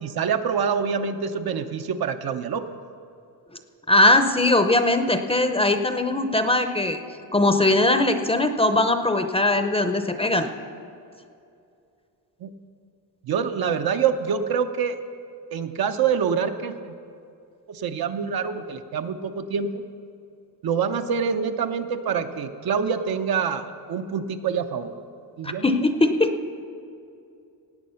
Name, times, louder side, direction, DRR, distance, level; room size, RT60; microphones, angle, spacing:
voice 1, 0.0-2.8 12.4-12.5 13.2-15.0 15.5-16.9 17.7-19.8 20.6-24.9 25.4-25.6, right 6 dB, 65° right, 7 dB, 0.8 m, -26 dB
voice 2, 3.9-7.0 7.3-10.5 25.4-26.3, left 2 dB, 15° left, 7 dB, 0.6 m, -20 dB
17.0 x 8.6 x 5.7 m, 2.5 s
cardioid pair, 125°, 39 cm